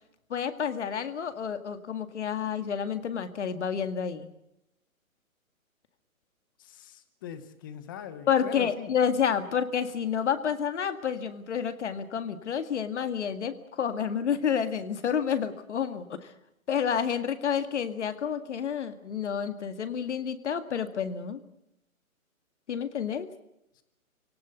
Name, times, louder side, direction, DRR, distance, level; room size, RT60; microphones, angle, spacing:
voice 1, 0.3-4.3 8.3-16.3 16.7-21.4 22.7-23.3, left 7 dB, 55° left, 10 dB, 2.0 m, -29 dB
voice 2, 6.6-8.9, left 9 dB, 15° left, 12 dB, 0.9 m, -42 dB
25.0 x 18.0 x 8.2 m, 0.85 s
hypercardioid pair, 165°, 42 cm